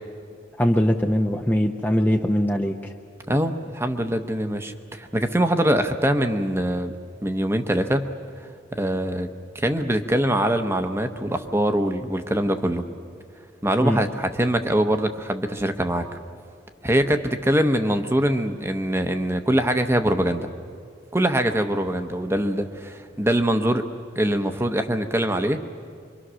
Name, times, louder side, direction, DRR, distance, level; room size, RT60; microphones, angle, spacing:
voice 1, 0.6-2.9 13.8-14.0, equal, 10° left, 3 dB, 0.6 m, -21 dB
voice 2, 3.3-6.9 7.2-8.0 8.7-9.3 9.5-12.9 13.6-16.1 16.8-20.5 21.1-23.8 24.2-25.6, right 1 dB, 15° right, 7 dB, 0.9 m, -23 dB
26.0 x 23.5 x 6.3 m, 2.3 s
head